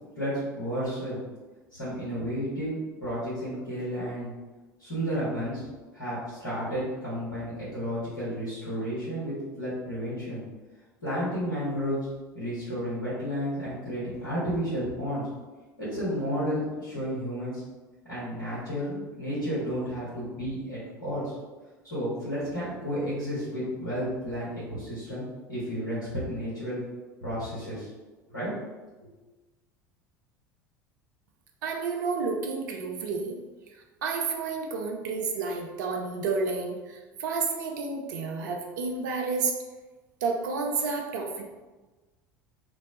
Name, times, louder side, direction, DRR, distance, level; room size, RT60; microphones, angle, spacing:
voice 1, 0.2-1.2 1.7-4.3 4.8-5.6 5.9-10.4 11.0-12.0 12.3-15.3 15.8-17.6 18.1-21.3 21.8-26.8 27.2-27.9 28.3-28.5, equal, 75° left, -12 dB, 1.4 m, -32 dB
voice 2, 31.6-33.4 34.0-39.5 40.2-41.4, right 4 dB, 65° right, 1 dB, 0.4 m, -30 dB
2.9 x 2.1 x 2.7 m, 1.2 s
figure-of-eight pair, 70°, 11 cm